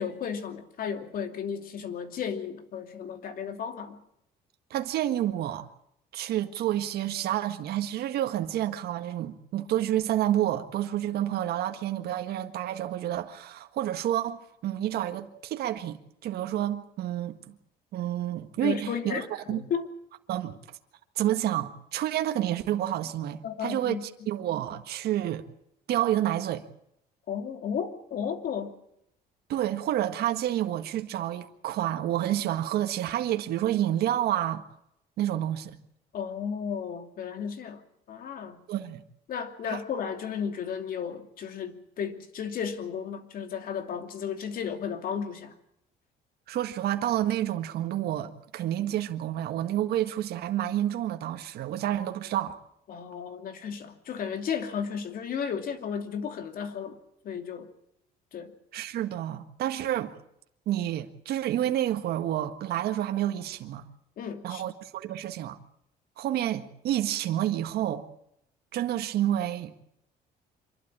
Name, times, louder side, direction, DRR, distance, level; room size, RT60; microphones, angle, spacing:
voice 1, 0.0-4.0 18.6-19.9 23.4-24.0 27.3-28.7 36.1-37.8 38.1-38.6 39.3-45.6 52.9-57.0 57.2-57.7 58.3-58.5 64.2-64.6, left 7 dB, 60° left, 2.8 m, -34 dB
voice 2, 4.7-5.7 6.1-17.5 17.9-19.6 20.3-20.6 21.2-25.4 25.9-26.6 29.5-34.6 35.2-35.7 38.7-39.0 39.6-39.8 46.5-52.6 58.7-60.2 60.7-63.9 64.4-65.6 66.2-68.1 68.7-69.7, right 12 dB, 70° right, 1.7 m, -29 dB
26.5 x 12.0 x 9.8 m
cardioid pair, 110°, 17 cm